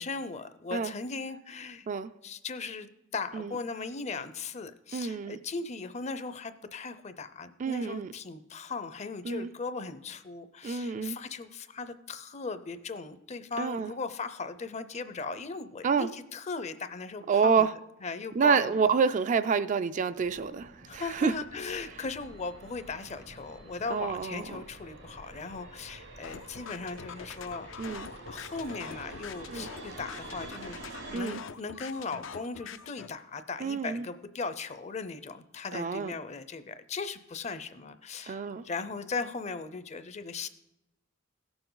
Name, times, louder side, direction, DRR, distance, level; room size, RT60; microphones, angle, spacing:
voice 1, 0.0-1.9 2.2-17.7 18.0-18.9 20.9-27.7 28.3-30.8 31.1-40.5, left 4 dB, 35° left, 0.5 m, -38 dB
voice 2, 4.9-5.4 7.6-8.1 9.2-9.5 10.6-11.2 13.6-13.9 15.8-16.1 17.3-17.7 18.4-21.3 23.9-24.6 27.8-28.1 29.5-29.7 31.1-31.4 33.6-34.0 35.7-36.1 38.3-38.6, right 5 dB, 40° right, 0.3 m, -28 dB
sound 1, 20.1-31.2, right 2 dB, 90° right, 2.6 m, -47 dB
sound 2, 26.2-33.1, left 6 dB, 80° left, 0.5 m, -44 dB
16.5 x 6.9 x 3.9 m
head